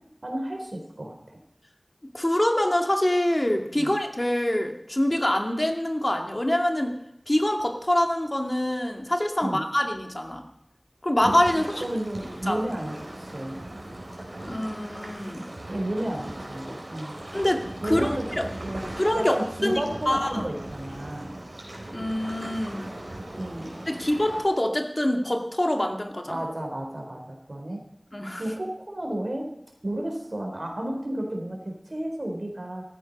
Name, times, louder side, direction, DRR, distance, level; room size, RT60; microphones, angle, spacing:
voice 1, 0.2-1.4 3.8-3.9 9.4-9.6 11.5-13.6 15.7-17.2 17.8-18.4 18.6-18.8 19.1-21.3 23.3-23.7 26.3-27.8 28.4-29.4 29.8-32.8, right 1 dB, 65° right, 2 dB, 4.0 m, -32 dB
voice 2, 2.1-6.9 7.3-10.4 11.0-11.8 12.5-12.6 14.5-15.4 17.3-18.5 19.0-19.4 19.6-19.8 20.1-20.5 21.9-22.9 23.9-26.4 28.1-28.4, left 1 dB, 40° left, 4 dB, 2.2 m, -25 dB
sound 1, 11.2-24.4, right 1 dB, 90° right, 4.0 m, -38 dB
15.0 x 14.0 x 5.4 m, 0.77 s
wide cardioid pair, 40°, 0 cm